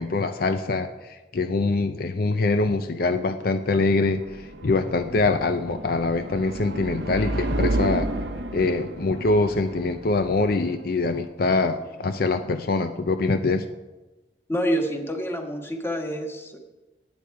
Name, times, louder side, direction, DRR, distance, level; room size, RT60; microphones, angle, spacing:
voice 1, 0.0-8.1 8.5-13.6, left 3 dB, 60° left, 8 dB, 0.6 m, -24 dB
sound 1, 3.2-12.1, right 1 dB, 85° right, 1.1 m, -32 dB
voice 2, 14.5-16.6, equal, 15° left, 3 dB, 1.5 m, -27 dB
19.0 x 8.7 x 4.8 m, 1.1 s
head